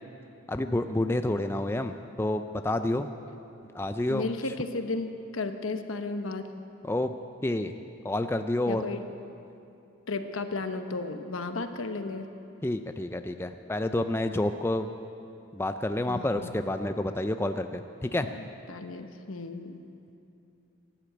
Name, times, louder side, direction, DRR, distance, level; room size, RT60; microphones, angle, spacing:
voice 1, 0.5-3.1 3.7-4.3 6.8-7.1 7.4-7.7 8.0-8.8 12.6-14.9 15.5-18.3, left 1 dB, 10° left, 8 dB, 0.4 m, -29 dB
voice 2, 4.1-6.5 8.7-9.1 10.1-12.3 16.1-16.6 18.2-19.9, left 3 dB, 80° left, 8 dB, 1.0 m, -34 dB
15.5 x 12.0 x 7.8 m, 2.7 s
head